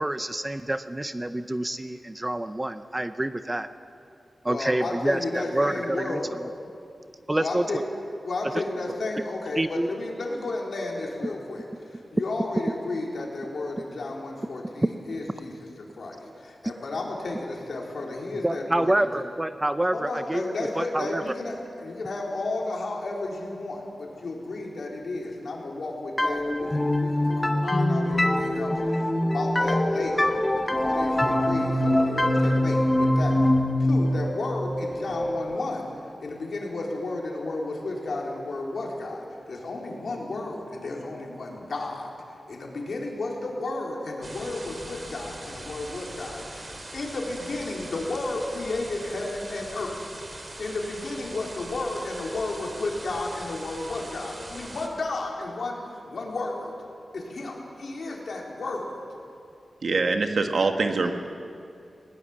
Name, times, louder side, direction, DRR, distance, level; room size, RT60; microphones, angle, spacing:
voice 1, 0.0-3.7 4.4-6.2 7.3-7.6 9.2-9.3 9.6-9.9 14.8-14.9 16.6-16.7 18.4-21.2, right 1 dB, 15° right, 10 dB, 0.6 m, -27 dB
voice 2, 4.5-6.4 7.4-7.8 8.2-15.5 15.8-19.1 19.9-30.3 30.6-33.5 33.8-35.9 36.2-50.1 50.6-56.7 57.1-59.0 60.9-61.1, left 2 dB, 65° left, -1 dB, 4.0 m, -33 dB
sound 1, 26.2-35.7, left 1 dB, 15° left, 1.1 m, -24 dB
sound 2, 44.2-54.9, right 1 dB, 30° right, 2.6 m, -41 dB
voice 3, 59.8-61.1, right 3 dB, 65° right, 6 dB, 1.4 m, -24 dB
19.5 x 19.0 x 7.4 m, 2.5 s
wide cardioid pair, 115°, 0 cm